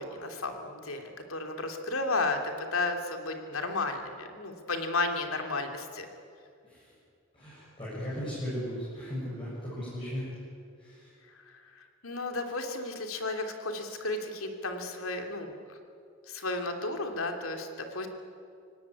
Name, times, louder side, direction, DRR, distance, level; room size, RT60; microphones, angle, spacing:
voice 1, 0.0-6.1 11.5-15.5 16.3-18.1, left 2 dB, 85° left, 5 dB, 3.0 m, -33 dB
voice 2, 7.3-10.3 10.8-11.1, equal, 25° left, -8 dB, 7.5 m, -37 dB
24.5 x 18.5 x 9.8 m, 2.4 s
head